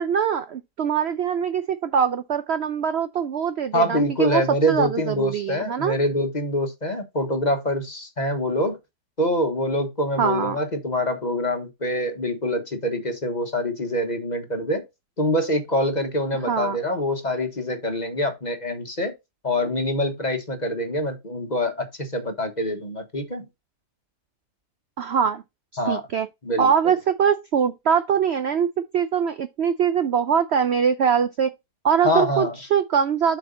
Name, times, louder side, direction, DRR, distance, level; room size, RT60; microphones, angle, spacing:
voice 1, 0.0-4.4 4.7-6.0 10.2-10.6 16.4-16.8 25.0-25.4 25.9-26.3 26.6-28.7 28.9-31.5 31.8-33.4, right 7 dB, 65° right, 0.6 m, -22 dB
voice 2, 3.7-8.8 9.2-14.8 15.2-19.1 19.4-23.5 25.8-26.0 26.4-26.9 32.0-32.6, left 1 dB, 30° left, 1.2 m, -25 dB
7.8 x 4.7 x 3.9 m
omnidirectional pair, 1.8 m